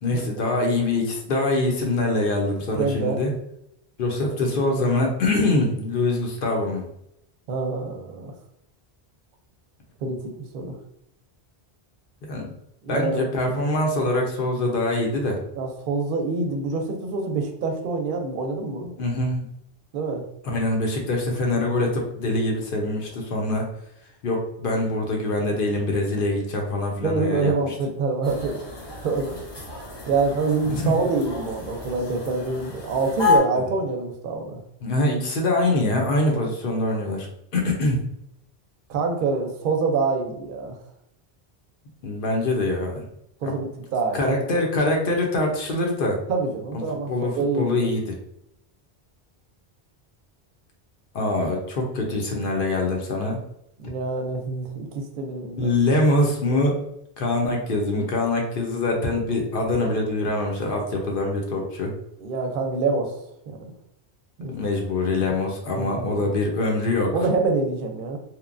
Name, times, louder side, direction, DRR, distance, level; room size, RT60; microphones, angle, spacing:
voice 1, 0.0-3.3 4.0-6.8 12.3-12.5 12.9-15.4 19.0-19.5 20.4-23.7 24.2-27.5 30.7-30.9 33.6-33.7 34.8-37.3 37.5-38.0 42.0-43.0 43.4-43.5 44.1-46.2 46.7-46.8 47.1-48.2 51.1-53.4 55.6-56.7 57.2-61.9 64.5-67.1, left 2 dB, 60° left, 1 dB, 0.7 m, -24 dB
voice 2, 2.7-3.2 7.5-8.3 10.0-10.7 12.8-13.5 15.5-18.9 19.9-20.2 27.0-28.6 29.0-29.4 30.1-34.6 38.9-40.8 43.4-44.3 46.3-47.9 53.8-55.8 60.7-60.8 61.5-61.7 62.2-63.2 63.5-63.7 64.4-64.5 65.7-66.3 67.1-68.2, right 4 dB, 60° right, 3 dB, 0.6 m, -26 dB
sound 1, 28.2-33.4, left 4 dB, 30° left, 0.7 m, -29 dB
2.9 x 2.1 x 2.4 m, 0.77 s
omnidirectional pair, 1.1 m